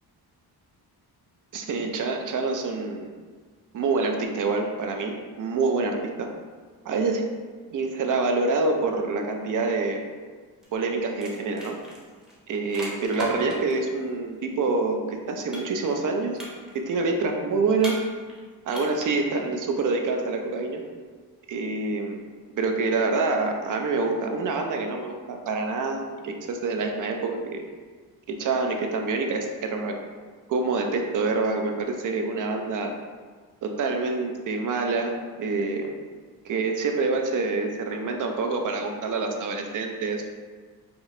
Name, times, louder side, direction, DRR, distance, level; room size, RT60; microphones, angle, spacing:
voice 1, 1.5-3.1 3.7-6.3 6.9-7.2 7.7-10.0 10.7-11.7 12.5-16.4 16.7-18.0 18.7-20.8 21.5-22.2 22.6-27.6 28.3-30.0 30.5-32.9 33.6-35.9 36.4-40.3, right 3 dB, 55° right, 3 dB, 0.5 m, -26 dB
sound 1, 10.6-10.8 11.1-13.9 15.5-16.1 16.4-16.9 17.8-18.4 18.7-19.2, equal, ahead, 0.7 m, -37 dB
4.5 x 2.5 x 3.1 m, 1.5 s
cardioid pair, 140°, 38 cm